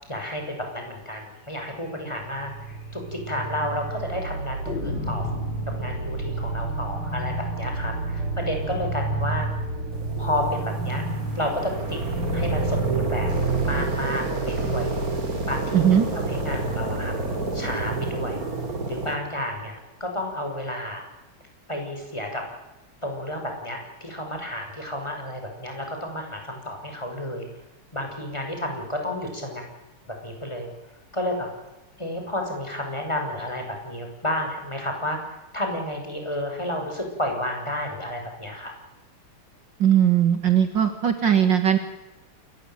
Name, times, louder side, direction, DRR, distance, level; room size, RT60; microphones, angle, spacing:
voice 1, 0.1-5.3 5.7-9.5 10.2-11.0 11.3-12.0 12.3-13.3 13.6-14.9 15.5-15.8 16.3-17.1 17.5-18.4 18.8-21.0 21.7-22.4 23.0-27.5 27.9-29.6 30.2-30.7 31.1-31.5 32.0-38.7, left 1 dB, 10° left, 3 dB, 6.6 m, -31 dB
sound 1, 1.8-2.0 2.3-2.4 2.7-2.8 3.4-3.9 4.7-9.4, left 3 dB, 55° left, 4.8 m, -37 dB
sound 2, 2.0-14.8, right 3 dB, 75° right, 4.5 m, -31 dB
sound 3, 9.9-19.1, right 3 dB, 40° right, 3.8 m, -28 dB
voice 2, 15.7-16.1 39.8-41.8, right 9 dB, 55° right, 8 dB, 2.3 m, -19 dB
28.5 x 15.0 x 9.3 m, 0.99 s
omnidirectional pair, 2.4 m